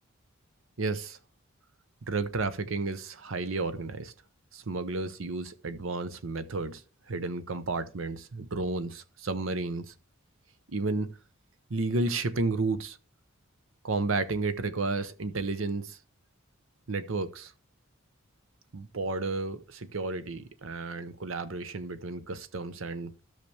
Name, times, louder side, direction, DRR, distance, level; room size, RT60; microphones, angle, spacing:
voice 1, 0.8-1.2 2.1-4.1 4.5-6.8 7.1-9.9 10.7-11.1 11.7-13.0 13.8-16.0 16.9-17.5 18.7-23.1, right 3 dB, 70° right, 0.8 m, -32 dB
13.5 x 5.9 x 3.3 m
head